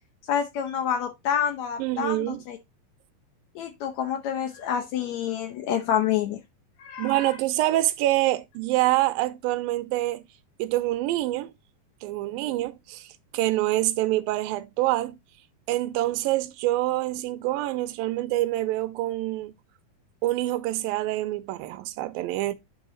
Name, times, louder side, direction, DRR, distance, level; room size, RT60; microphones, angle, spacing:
voice 1, 0.3-2.6 3.5-6.4 6.8-7.4, left 9 dB, 80° left, 1.6 m, -28 dB
voice 2, 1.8-2.4 7.0-10.2 10.6-11.5 12.0-13.1 13.3-15.2 15.7-19.5 20.2-22.5, right 16 dB, 85° right, 2.3 m, -26 dB
9.2 x 4.0 x 3.7 m
omnidirectional pair, 4.3 m